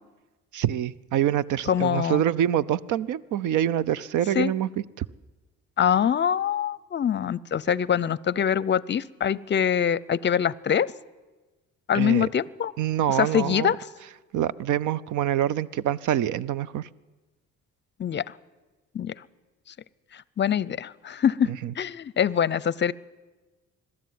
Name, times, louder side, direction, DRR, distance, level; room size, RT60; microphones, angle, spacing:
voice 1, 0.5-4.7 5.0-5.1 11.9-12.3 12.8-13.7 14.3-16.9 21.6-21.7, right 11 dB, 80° right, 20 dB, 0.6 m, -25 dB
voice 2, 1.7-2.2 4.3-4.5 5.8-10.9 11.9-12.7 13.1-13.8 18.0-18.2 18.9-19.1 20.1-21.5 21.8-22.9, left 8 dB, 35° left, 22 dB, 0.6 m, -24 dB
21.5 x 13.0 x 9.5 m, 1.2 s
cardioid pair, 90°, 30 cm